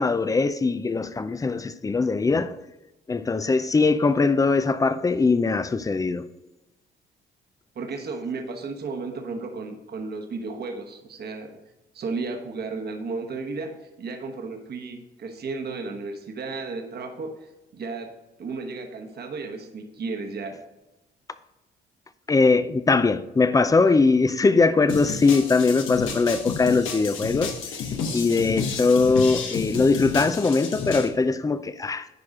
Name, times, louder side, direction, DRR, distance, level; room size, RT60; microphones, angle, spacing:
voice 1, 0.0-2.6 3.1-6.3 22.3-32.1, left 4 dB, 15° left, 0.5 m, -21 dB
voice 2, 7.7-11.5 11.9-18.1 18.4-20.6, right 4 dB, 55° right, 1.2 m, -34 dB
sound 1, 24.9-31.1, left 5 dB, 85° left, 1.2 m, -31 dB
10.5 x 4.8 x 3.7 m
cardioid pair, 90°, 20 cm